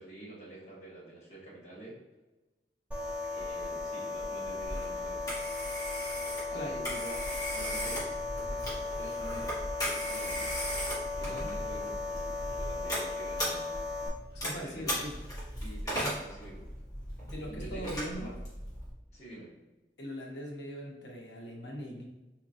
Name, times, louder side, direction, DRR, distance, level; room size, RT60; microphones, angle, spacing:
voice 1, 0.0-2.0 3.3-5.4 6.5-10.5 11.1-13.7 14.6-15.0 15.6-16.7 17.5-17.9 18.1-18.3 19.1-19.5, right 1 dB, 40° left, -6 dB, 1.3 m, -47 dB
sound 1, 2.9-14.1, left 3 dB, 10° right, 0.7 m, -36 dB
Telephone, 4.7-18.9, equal, 20° left, 1.2 m, -37 dB
voice 2, 6.5-6.8 11.2-11.5 14.3-15.2 17.3-18.3 20.0-22.1, equal, 85° left, -1 dB, 0.9 m, -40 dB
4.0 x 2.9 x 2.6 m, 1.1 s
head